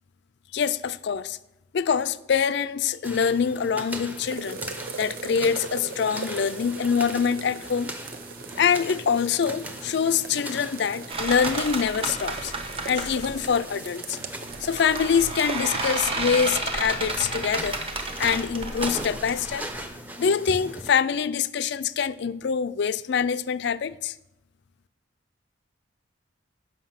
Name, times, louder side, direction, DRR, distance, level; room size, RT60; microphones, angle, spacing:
voice 1, 0.5-1.4 1.7-4.6 5.0-7.9 8.6-12.5 12.9-14.2 14.6-17.8 18.2-19.7 20.2-24.2, left 6 dB, 55° left, 0.4 m, -25 dB
sound 1, 3.0-20.9, right 1 dB, 10° right, 0.6 m, -39 dB
sound 2, 4.3-15.7, right 4 dB, 45° right, 0.7 m, -40 dB
sound 3, 11.1-13.4 14.5-19.9, right 3 dB, 25° right, 0.9 m, -31 dB
9.2 x 5.8 x 5.8 m
head